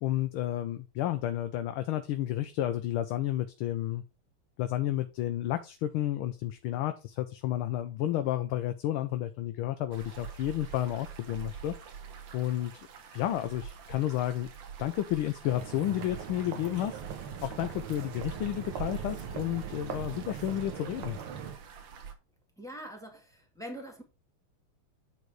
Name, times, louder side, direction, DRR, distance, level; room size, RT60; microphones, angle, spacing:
voice 1, 0.0-4.0 4.6-11.7 12.3-12.7 13.1-14.5 14.8-17.0 17.4-21.2, left 13 dB, 75° left, 1.5 m, -31 dB
sound 1, 9.9-22.1, right 7 dB, 65° right, 1.7 m, -45 dB
sound 2, 15.5-21.6, right 8 dB, 80° right, 2.0 m, -41 dB
voice 2, 22.6-24.0, equal, ahead, 1.7 m, -43 dB
9.4 x 4.0 x 4.7 m
omnidirectional pair, 2.4 m